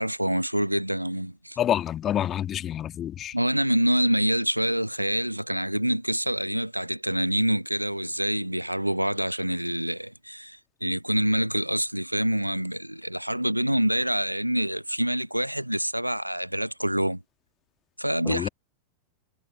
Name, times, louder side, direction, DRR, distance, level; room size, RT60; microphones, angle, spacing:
voice 1, 0.0-1.6 3.3-17.2 18.0-18.5, right 1 dB, 90° right, 0.7 m, -26 dB
voice 2, 1.6-3.3 18.3-18.5, left 10 dB, 30° left, 1.8 m, -27 dB
figure-of-eight pair, 90°, 0 cm